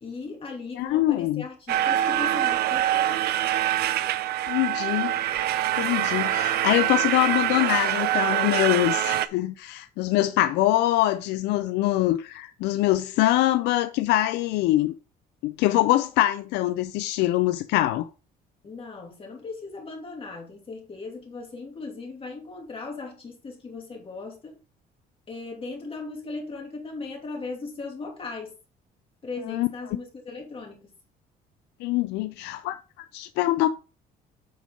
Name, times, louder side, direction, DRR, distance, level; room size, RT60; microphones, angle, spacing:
voice 1, 0.0-3.2 18.6-24.6 25.3-28.5 29.2-30.9, left 3 dB, 35° left, 2.8 m, -38 dB
voice 2, 0.8-1.4 4.5-5.1 5.7-14.9 15.4-18.1 29.5-29.7 31.8-33.7, left 15 dB, 85° left, 0.5 m, -24 dB
sound 1, 1.7-9.3, right 13 dB, 70° right, 0.6 m, -25 dB
7.8 x 5.3 x 3.8 m
cardioid pair, 110°, 17 cm